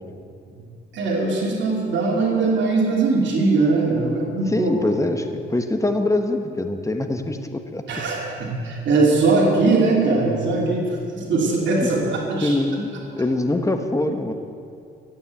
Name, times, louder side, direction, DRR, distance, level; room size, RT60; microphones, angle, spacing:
voice 1, 0.9-4.7 7.9-12.5, right 3 dB, 70° right, -2 dB, 2.8 m, -20 dB
voice 2, 4.5-7.8 11.2-11.4 11.8-11.9 12.4-14.3, left 2 dB, 15° left, 6 dB, 1.2 m, -24 dB
14.0 x 9.0 x 8.3 m, 2.5 s
cardioid pair, 90°, 20 cm